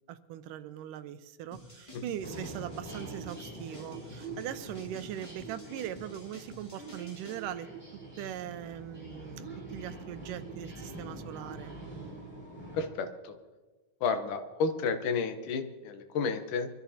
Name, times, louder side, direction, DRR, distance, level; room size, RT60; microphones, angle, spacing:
voice 1, 0.1-11.8, right 11 dB, 85° right, 12 dB, 2.2 m, -41 dB
sound 1, 1.5-7.4, left 1 dB, 30° left, 0.6 m, -50 dB
sound 2, 2.2-12.9, right 2 dB, 5° left, 5.2 m, -45 dB
voice 2, 12.7-13.4 14.0-16.7, left 5 dB, 80° left, 7 dB, 2.5 m, -31 dB
24.5 x 13.0 x 2.8 m, 1.2 s
omnidirectional pair, 3.7 m